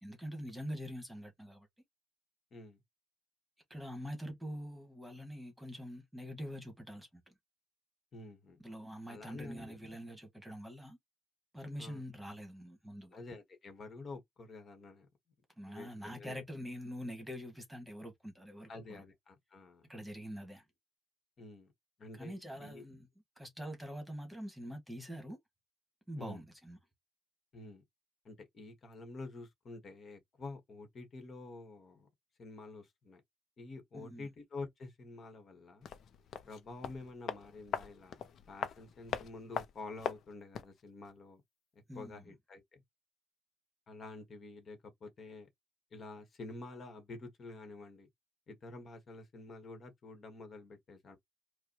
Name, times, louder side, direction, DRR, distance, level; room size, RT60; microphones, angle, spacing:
voice 1, 0.0-1.7 3.7-7.3 8.6-11.0 11.5-13.2 15.6-19.0 19.9-20.6 22.2-23.1 23.4-25.4 26.1-26.8 33.9-34.3 41.9-42.2, equal, 5° right, 1.6 m, -45 dB
voice 2, 8.1-8.6 9.1-9.8 11.8-12.0 13.1-15.1 15.6-16.4 18.7-19.9 21.4-21.7 22.0-22.8 26.2-26.4 27.5-27.8 28.2-32.1 32.4-33.2 33.6-35.9 36.5-41.4 41.9-42.8 43.9-45.5 45.9-48.1 48.5-51.2, left 3 dB, 50° left, 1.3 m, -49 dB
sound 1, 35.8-40.8 41.1-41.2, left 8 dB, 70° left, 0.6 m, -41 dB
4.7 x 2.2 x 2.9 m
cardioid pair, 90°, 0 cm